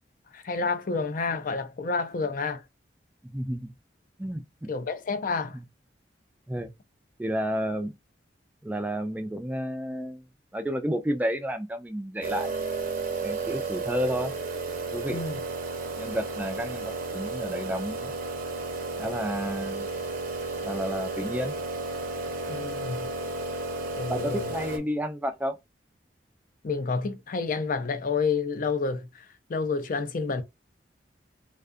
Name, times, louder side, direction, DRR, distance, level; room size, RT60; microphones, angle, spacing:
voice 1, 0.3-2.6 4.7-5.6 15.1-15.4 22.5-23.1 24.0-24.5 26.6-30.4, left 4 dB, 50° left, 0.5 m, -29 dB
voice 2, 3.3-3.7 4.2-4.7 5.5-5.6 6.5-6.7 7.2-7.9 8.6-10.2 10.5-12.5 13.2-14.3 14.9-15.2 16.0-18.1 19.0-19.9 20.6-21.5 24.1-25.6, equal, 10° right, 0.3 m, -31 dB
sound 1, 12.2-24.8, right 3 dB, 55° right, 0.6 m, -33 dB
2.5 x 2.3 x 2.4 m
head